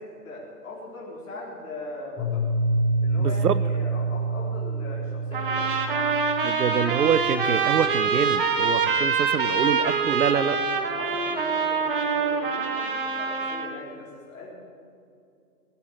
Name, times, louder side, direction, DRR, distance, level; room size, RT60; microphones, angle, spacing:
voice 1, 0.0-2.5 3.0-6.1 10.3-14.5, left 2 dB, 55° left, -5 dB, 4.1 m, -40 dB
Piano, 2.2-7.8, right 2 dB, 15° left, 3.6 m, -27 dB
voice 2, 3.2-3.6 6.4-10.6, right 7 dB, 70° right, 16 dB, 0.9 m, -25 dB
sound 1, 5.3-13.7, right 5 dB, 35° right, 1.2 m, -25 dB
19.0 x 8.5 x 8.7 m, 2.4 s
hypercardioid pair, 170°, 48 cm